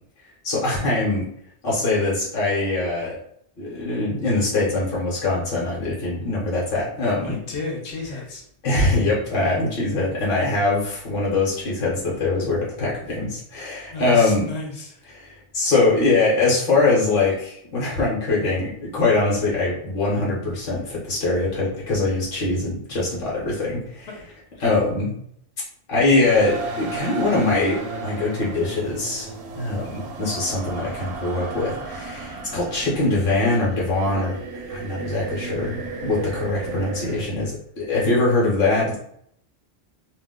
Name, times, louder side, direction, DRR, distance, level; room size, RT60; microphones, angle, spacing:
voice 1, 0.4-1.2 1.6-3.2 3.6-7.4 8.6-14.5 15.1-24.1 24.6-25.1 25.9-27.8 28.0-29.3 29.6-34.4 34.7-38.9, left 2 dB, 60° left, -5 dB, 1.0 m, -22 dB
voice 2, 7.2-8.4 13.9-15.0 24.2-24.3 24.6-24.7, left 3 dB, 85° left, -1 dB, 1.1 m, -33 dB
sound 1, 26.2-37.3, right 3 dB, 75° right, 0.8 m, -34 dB
2.5 x 2.1 x 3.5 m, 0.70 s
omnidirectional pair, 1.1 m